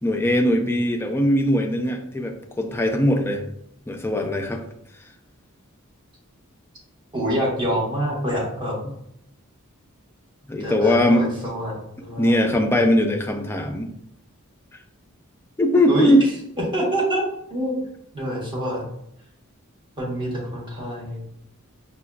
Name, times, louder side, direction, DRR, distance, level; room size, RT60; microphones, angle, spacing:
voice 1, 0.0-3.4 3.9-4.6 10.5-11.3 12.2-13.9 15.6-16.2, left 1 dB, 10° left, 3 dB, 0.3 m, -20 dB
voice 2, 7.1-8.7 10.6-12.7 15.9-16.1 16.7-17.2 17.5-17.8 18.1-18.8 20.0-21.2, equal, 25° right, -5 dB, 1.1 m, -26 dB
5.2 x 2.2 x 2.3 m, 0.75 s
head